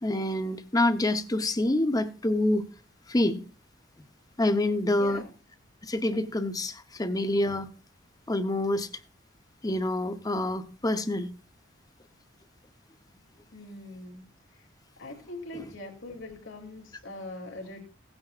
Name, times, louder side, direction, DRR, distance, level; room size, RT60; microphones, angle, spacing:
voice 1, 0.0-2.6 3.1-3.4 4.4-5.2 5.8-7.7 8.3-8.9 9.6-11.3, left 1 dB, 20° left, 0.9 m, -27 dB
voice 2, 4.8-5.3 13.5-14.2 14.5-14.7 15.0-17.8, left 2 dB, 80° left, 2.9 m, -42 dB
17.0 x 9.7 x 2.5 m
head